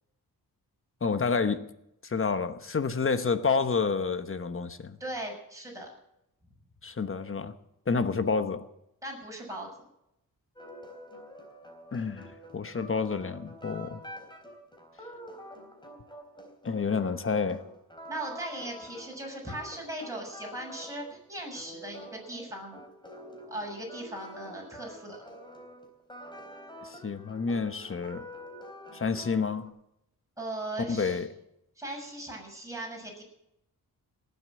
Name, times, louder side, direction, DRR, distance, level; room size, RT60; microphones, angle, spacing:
voice 1, 1.0-1.6 2.0-5.0 6.8-7.5 7.9-8.6 11.9-14.0 16.6-17.6 26.8-28.2 28.9-29.7 30.9-31.3, left 5 dB, 35° left, 1.1 m, -29 dB
voice 2, 5.0-5.9 9.0-9.7 18.1-22.8 23.5-25.2 30.4-31.2 31.8-33.2, right 1 dB, 10° right, 6.8 m, -38 dB
sound 1, 10.6-29.7, equal, 10° left, 3.8 m, -47 dB
18.5 x 8.2 x 7.6 m
wide cardioid pair, 100°, 36 cm